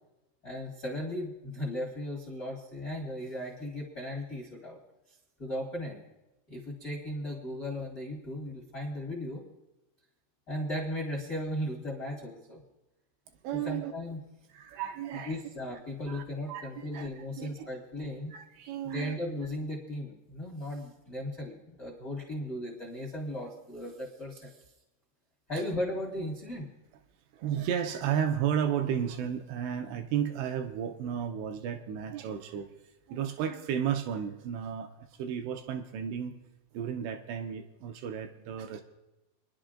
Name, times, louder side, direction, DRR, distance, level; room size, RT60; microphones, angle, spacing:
voice 1, 0.4-4.8 5.4-6.0 6.5-9.4 10.5-12.6 13.6-14.2 15.2-18.3 18.9-24.6 25.5-26.7, left 1 dB, 55° left, -3 dB, 1.0 m, -36 dB
voice 2, 13.4-13.9 14.5-15.7 16.1-17.7 18.3-19.2 27.3-32.8 33.1-36.4 36.7-38.8, right 8 dB, 80° right, 6 dB, 2.6 m, -33 dB
26.0 x 10.5 x 2.5 m, 0.99 s
omnidirectional pair, 5.2 m